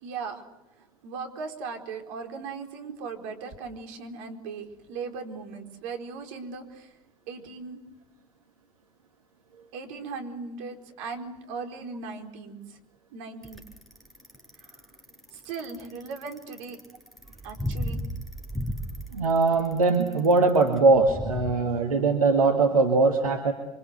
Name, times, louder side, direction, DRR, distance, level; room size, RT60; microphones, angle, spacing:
voice 1, 0.0-0.4 1.0-6.9 7.3-7.8 9.7-12.8 13.1-13.6 14.6-14.8 15.3-16.8 17.4-18.0, right 4 dB, 65° right, 4 dB, 4.5 m, -38 dB
Bicycle, 13.4-21.5, equal, ahead, 6.9 m, -35 dB
voice 2, 19.1-23.5, right 3 dB, 80° right, 4 dB, 2.0 m, -21 dB
28.5 x 25.5 x 8.1 m, 0.91 s
figure-of-eight pair, 65°, 18 cm